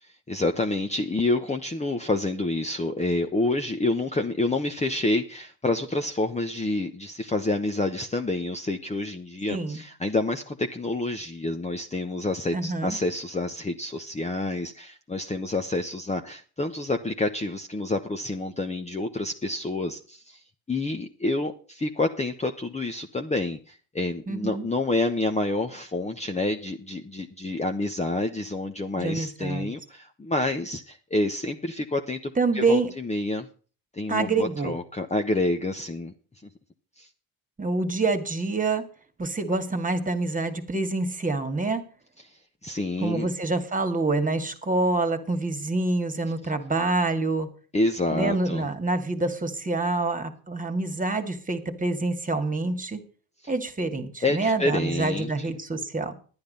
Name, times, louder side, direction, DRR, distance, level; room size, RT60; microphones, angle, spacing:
voice 1, 0.0-20.4 20.7-33.5 33.9-36.1 37.0-37.1 42.6-43.3 47.7-48.7 54.2-55.5, left 2 dB, 15° left, 5 dB, 1.0 m, -28 dB
voice 2, 9.5-9.8 12.5-13.0 24.3-24.6 29.0-29.7 32.4-32.9 34.1-34.8 37.6-38.9 39.2-41.9 43.0-47.5 48.1-53.0 53.5-56.1, right 3 dB, 20° right, 8 dB, 2.0 m, -26 dB
10.5 x 9.8 x 5.4 m, 0.39 s
supercardioid pair, 80°, 42 cm